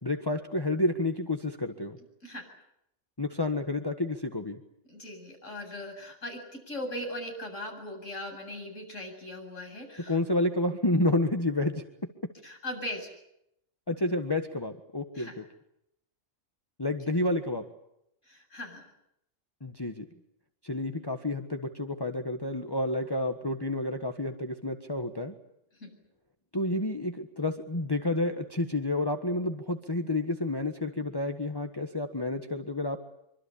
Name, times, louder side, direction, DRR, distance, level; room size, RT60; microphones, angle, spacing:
voice 1, 0.0-2.0 3.2-4.6 10.1-11.8 13.9-15.4 16.8-17.6 19.6-20.1 20.6-25.3 26.5-33.0, left 2 dB, 20° left, 5 dB, 1.5 m, -30 dB
voice 2, 4.9-10.2 12.4-13.1 15.1-15.3 18.2-18.8 25.8-25.9, left 1 dB, 80° left, 2 dB, 8.2 m, -39 dB
25.0 x 25.0 x 8.6 m, 0.81 s
omnidirectional pair, 1.3 m